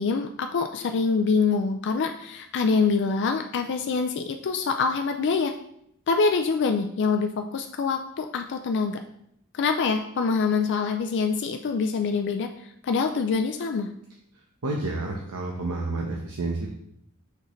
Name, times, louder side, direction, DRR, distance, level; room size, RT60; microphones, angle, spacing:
voice 1, 0.0-5.5 6.1-9.0 9.5-12.5 12.8-13.9, left 4 dB, 55° left, 5 dB, 0.4 m, -25 dB
voice 2, 14.6-16.7, right 2 dB, 80° right, -1 dB, 0.9 m, -30 dB
6.2 x 5.3 x 3.1 m, 0.73 s
head